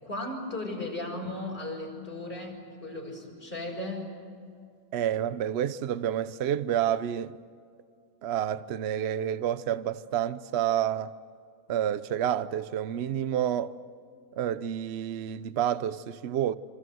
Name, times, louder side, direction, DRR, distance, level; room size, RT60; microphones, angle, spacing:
voice 1, 0.0-4.1, left 2 dB, 25° left, 5.8 m, -36 dB
voice 2, 4.9-7.4 8.2-11.1 11.7-13.7 14.4-16.5, right 10 dB, 60° right, 0.7 m, -29 dB
27.0 x 26.5 x 7.8 m
omnidirectional pair, 2.1 m